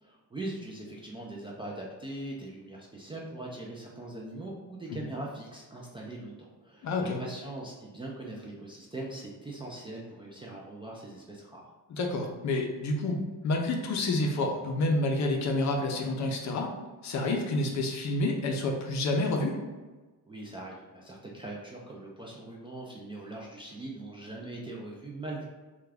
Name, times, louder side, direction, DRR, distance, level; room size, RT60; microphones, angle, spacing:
voice 1, 0.0-11.7 20.3-25.4, right 2 dB, 15° right, -3 dB, 0.3 m, -41 dB
voice 2, 6.8-7.2 11.9-16.7 17.0-19.6, left 2 dB, 50° left, 3 dB, 0.6 m, -29 dB
3.4 x 2.3 x 3.3 m, 1.3 s
cardioid pair, 135°, 38 cm